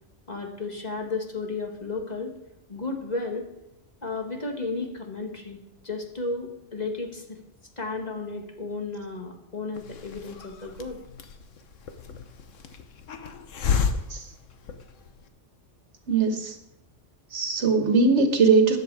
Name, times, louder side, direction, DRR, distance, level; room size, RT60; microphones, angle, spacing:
voice 1, 0.3-2.4 2.7-3.4 4.0-5.6 5.8-7.4 7.8-11.0, left 3 dB, 35° left, 2 dB, 2.0 m, -33 dB
Hiss, 9.7-15.2, left 6 dB, 90° left, 1.4 m, -32 dB
voice 2, 16.1-16.5 17.3-18.8, right 4 dB, 65° right, 6 dB, 1.6 m, -20 dB
14.0 x 10.0 x 4.8 m, 0.87 s
omnidirectional pair, 1.3 m